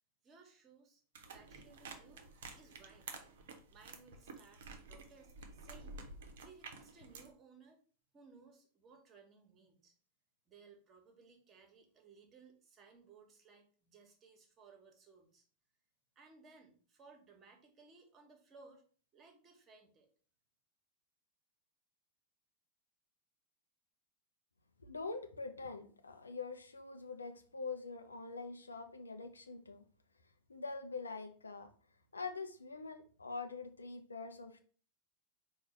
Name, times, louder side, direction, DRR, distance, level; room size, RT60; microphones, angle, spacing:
voice 1, 0.2-1.0 1.3-6.0 6.4-7.8 8.1-9.9 10.5-15.4 16.1-18.8 19.1-20.1, right 4 dB, 25° right, 2 dB, 1.2 m, -61 dB
sound 1, 1.1-7.3, right 4 dB, 60° right, 0.7 m, -51 dB
voice 2, 24.8-29.9 30.5-31.7 32.1-34.6, left 4 dB, 75° left, 7 dB, 0.5 m, -44 dB
4.5 x 2.4 x 4.2 m, 0.43 s
figure-of-eight pair, 90°, 0 cm